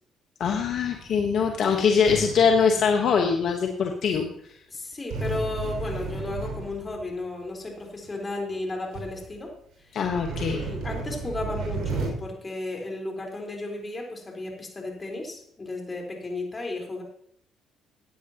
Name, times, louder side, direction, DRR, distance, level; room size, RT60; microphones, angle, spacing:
voice 1, 0.4-4.3 9.9-10.6, left 6 dB, 65° left, 3 dB, 1.2 m, -22 dB
sound 1, 0.5-1.2 2.1-3.3 5.1-7.2 8.0-8.1 8.6-8.7 8.9-9.3 10.1-12.1, right 3 dB, 65° right, 5.7 m, -33 dB
voice 2, 4.7-9.5 9.8-10.0 10.5-17.0, left 2 dB, 30° left, 0 dB, 4.2 m, -34 dB
15.5 x 9.1 x 2.9 m, 0.64 s
supercardioid pair, 65°, 0 cm